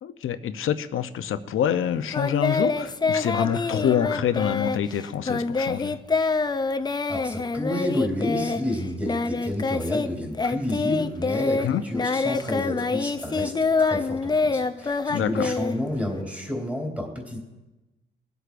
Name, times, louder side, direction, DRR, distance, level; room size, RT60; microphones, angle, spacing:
voice 1, 0.0-6.0 11.6-11.8 15.1-15.5, left 9 dB, 80° left, 11 dB, 0.7 m, -26 dB
Singing, 2.1-10.1 10.3-16.2, left 4 dB, 20° left, 0.4 m, -26 dB
voice 2, 7.1-17.4, left 1 dB, 5° right, 0 dB, 2.7 m, -30 dB
23.0 x 8.0 x 2.5 m, 1.1 s
cardioid pair, 125°, 21 cm